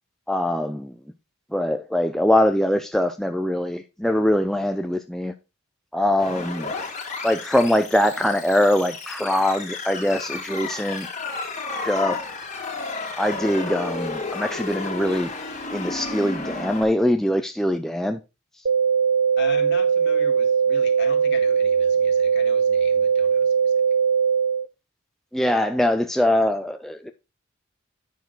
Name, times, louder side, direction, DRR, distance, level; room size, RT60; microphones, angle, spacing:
voice 1, 0.3-0.9 1.5-5.3 5.9-6.7 7.2-11.1 11.8-12.2 13.2-15.3 15.7-18.2 25.3-27.1, left 1 dB, ahead, 0.5 m, -22 dB
sound 1, 6.2-16.8, left 3 dB, 35° left, 2.1 m, -32 dB
sound 2, 18.7-24.7, right 6 dB, 60° right, 0.8 m, -20 dB
voice 2, 19.4-23.8, left 3 dB, 55° left, 2.0 m, -38 dB
9.4 x 6.1 x 4.0 m
head